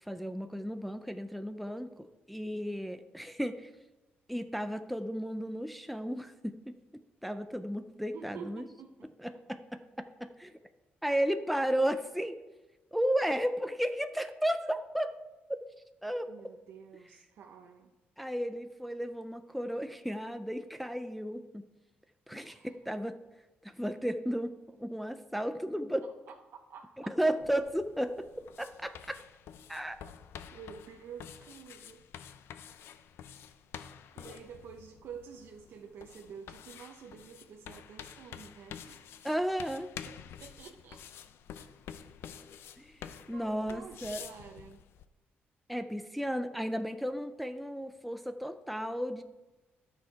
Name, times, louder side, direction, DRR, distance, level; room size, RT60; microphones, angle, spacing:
voice 1, 0.1-3.7 4.3-6.7 7.2-8.6 9.2-10.5 11.0-12.4 12.9-15.1 15.5-15.6 16.0-16.3 18.2-21.6 22.3-22.6 22.9-23.2 23.6-26.1 27.1-28.3 28.6-29.2 29.7-30.0 39.2-39.9 42.8-43.0 43.3-44.2 45.7-49.2, equal, ahead, 8 dB, 0.4 m, -34 dB
voice 2, 8.1-9.1 16.3-17.9 22.4-22.8 26.3-26.9 30.5-32.0 34.1-39.1 40.1-41.0 43.3-44.8, right 7 dB, 70° right, 2 dB, 0.7 m, -49 dB
sound 1, 27.4-45.0, left 8 dB, 90° left, 0.5 m, -49 dB
12.0 x 6.4 x 4.6 m, 1.1 s
cardioid pair, 160°, 4 cm